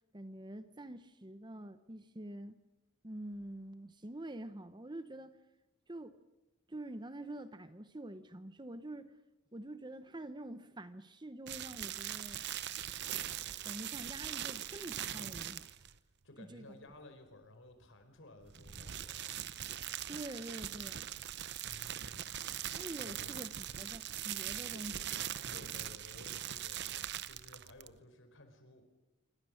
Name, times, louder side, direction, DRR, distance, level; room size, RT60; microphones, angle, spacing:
voice 1, 0.1-2.6 3.0-5.4 5.9-6.2 6.7-9.1 9.5-12.5 13.6-15.7 16.4-16.8 20.1-21.1 22.7-25.0, right 1 dB, 20° right, 11 dB, 0.9 m, -46 dB
sound 1, 11.5-16.0 18.4-28.0, right 11 dB, 55° right, 0.8 m, -41 dB
voice 2, 16.2-19.4 21.6-22.4 22.7-23.3 24.7-26.8 27.2-28.8, left 1 dB, 60° left, 7 dB, 4.8 m, -56 dB
27.0 x 24.5 x 6.5 m, 1.0 s
head